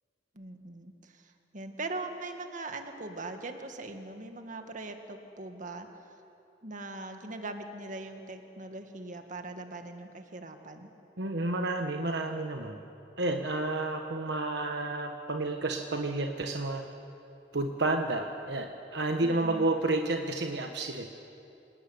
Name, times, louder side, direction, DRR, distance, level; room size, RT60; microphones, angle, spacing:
voice 1, 0.3-5.9 6.6-10.9 19.2-19.7, right 2 dB, 45° right, 6 dB, 2.1 m, -41 dB
voice 2, 11.2-12.8 13.2-16.8 17.5-21.1, right 2 dB, 65° right, 4 dB, 1.3 m, -30 dB
27.0 x 18.5 x 9.7 m, 2.8 s
head